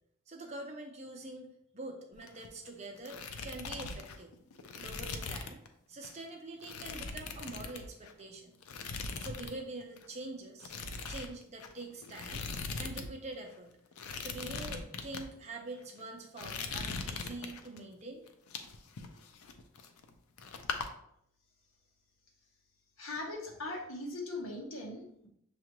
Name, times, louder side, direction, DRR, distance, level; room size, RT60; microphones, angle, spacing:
voice 1, 0.3-4.3 4.7-5.6 5.9-8.6 9.2-10.7 11.1-12.4 12.8-13.8 14.2-18.2, right 2 dB, 30° right, 2 dB, 0.6 m, -45 dB
sound 1, 2.1-2.7 2.9-5.7 6.0-6.2 6.6-8.2 8.6-9.6 9.8-10.1 10.6-13.1 13.3-13.4 13.9-15.2 15.8-16.0 16.4-17.8 18.3-20.1 20.4-20.9, left 4 dB, 90° left, 0.5 m, -40 dB
voice 2, 23.0-25.3, left 2 dB, 70° left, 0 dB, 1.1 m, -40 dB
6.5 x 2.4 x 3.0 m, 0.73 s
head